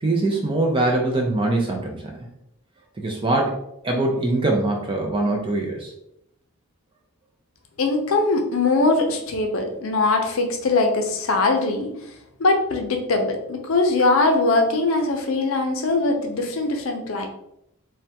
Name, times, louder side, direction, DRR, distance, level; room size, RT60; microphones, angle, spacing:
voice 1, 0.0-2.1 3.0-3.6 3.8-5.9, right 2 dB, 25° right, 1 dB, 0.4 m, -22 dB
voice 2, 7.8-11.9 12.4-17.3, left 3 dB, 65° left, 4 dB, 0.5 m, -21 dB
3.3 x 2.2 x 2.7 m, 0.79 s
head